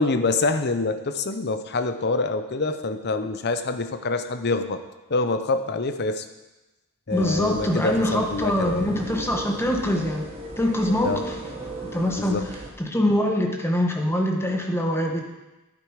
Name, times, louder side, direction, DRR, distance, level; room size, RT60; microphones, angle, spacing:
voice 1, 0.0-4.8 5.1-6.3 7.1-8.9 11.0-11.2 11.6-12.5, left 3 dB, 50° left, 9 dB, 0.8 m, -26 dB
voice 2, 7.1-10.3 10.6-11.1 11.9-12.4 12.8-15.2, left 1 dB, 10° left, 2 dB, 1.3 m, -23 dB
sound 1, 7.1-12.7, right 1 dB, 30° right, 1.6 m, -36 dB
11.0 x 9.2 x 4.8 m, 1.0 s
head